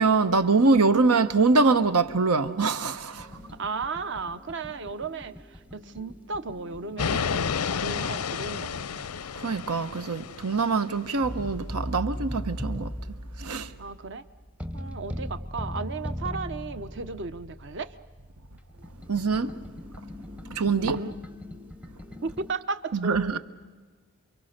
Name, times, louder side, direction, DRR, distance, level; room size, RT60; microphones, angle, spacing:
voice 1, 0.0-3.4 9.3-12.9 13.4-13.7 19.1-19.6 20.5-21.0 22.9-23.4, right 4 dB, 90° right, 1.0 m, -24 dB
sound 1, 3.1-9.3 11.2-22.5, equal, 5° right, 0.7 m, -39 dB
voice 2, 3.5-9.1 13.8-14.2 14.7-18.0 20.8-21.2 22.2-23.4, right 4 dB, 55° right, 0.9 m, -35 dB
sound 2, 7.0-11.0, left 6 dB, 90° left, 0.6 m, -31 dB
28.5 x 23.5 x 6.6 m
head